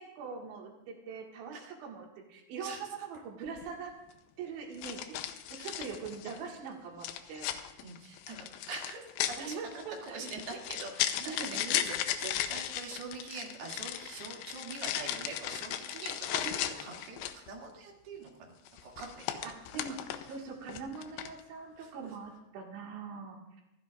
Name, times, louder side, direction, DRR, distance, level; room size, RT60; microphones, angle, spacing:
voice 1, 0.0-3.9 4.4-7.5 9.4-10.4 11.2-11.9 16.4-16.7 19.4-20.0 20.3-23.6, right 5 dB, 80° right, 0 dB, 4.1 m, -42 dB
sound 1, 3.5-3.7 4.8-6.5 7.0-17.5 18.7-20.4 20.7-21.4, left 11 dB, 90° left, 3.0 m, -36 dB
voice 2, 7.8-9.6 10.0-18.6 18.8-19.5 21.8-22.1, right 4 dB, 60° right, -2 dB, 4.3 m, -44 dB
25.0 x 15.0 x 2.5 m, 0.90 s
omnidirectional pair, 5.2 m